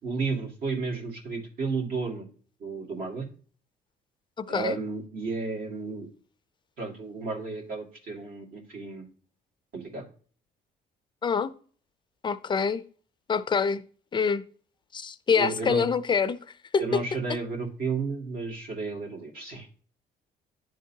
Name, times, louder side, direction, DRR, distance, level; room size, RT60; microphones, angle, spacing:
voice 1, 0.0-2.3 2.6-3.3 4.5-6.1 6.8-9.1 9.7-10.0 15.4-15.9 16.8-19.7, right 4 dB, 60° right, 2.1 m, -32 dB
voice 2, 12.2-12.8 13.3-13.8 14.1-14.4 14.9-16.4 16.7-17.0, left 5 dB, 25° left, 0.5 m, -25 dB
11.0 x 3.7 x 2.8 m
cardioid pair, 110°, 17 cm